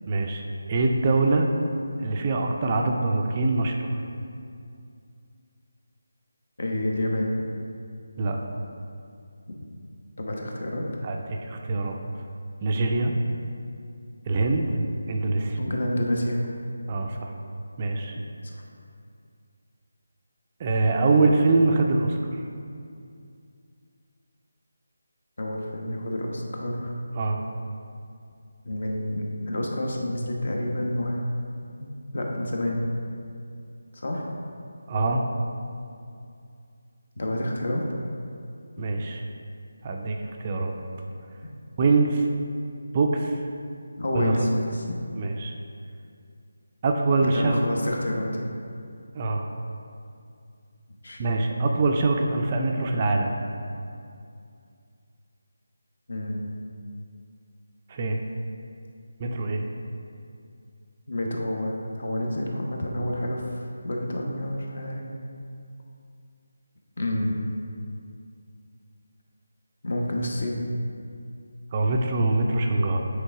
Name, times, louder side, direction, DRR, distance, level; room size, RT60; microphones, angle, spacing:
voice 1, 0.1-0.4 0.7-1.5 2.0-4.0 8.2-8.4 11.0-11.2 11.5-11.9 12.6-13.1 14.3-14.7 15.1-15.6 16.9-17.3 17.8-18.2 20.6-22.2 27.2-27.4 34.9-35.2 38.8-39.2 39.8-40.7 41.8-42.3 42.9-43.4 44.1-44.5 45.2-45.5 46.8-47.6 49.1-49.5 51.2-53.4 57.9-58.2 59.2-59.6 71.7-73.0, right 3 dB, 25° right, 2 dB, 0.4 m, -23 dB
voice 2, 6.6-7.3 10.2-10.9 15.6-16.4 18.4-18.6 25.4-26.9 28.6-31.3 31.8-32.9 33.9-34.4 37.2-37.8 44.0-45.0 47.2-48.5 51.0-51.2 56.1-56.5 61.1-65.1 67.0-67.4 69.8-70.6, left 1 dB, 60° left, 0 dB, 1.0 m, -28 dB
8.2 x 3.3 x 4.7 m, 2.4 s
figure-of-eight pair, 170°, 0 cm